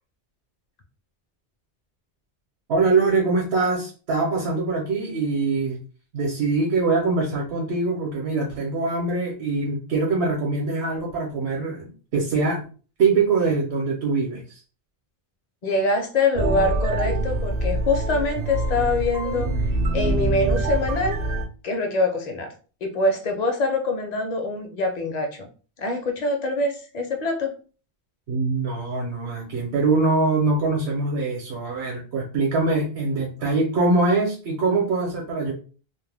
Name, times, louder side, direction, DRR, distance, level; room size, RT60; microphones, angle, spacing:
voice 1, 2.7-5.8 6.1-12.6 13.0-14.6 28.3-35.5, right 3 dB, 70° right, 0 dB, 1.0 m, -23 dB
voice 2, 15.6-19.5 19.9-21.2 21.6-22.5 22.8-25.5 25.8-27.5, left 2 dB, 45° left, 3 dB, 0.6 m, -24 dB
sound 1, 16.3-21.4, right 2 dB, 50° right, 0.5 m, -25 dB
2.4 x 2.1 x 3.3 m, 0.37 s
omnidirectional pair, 1.1 m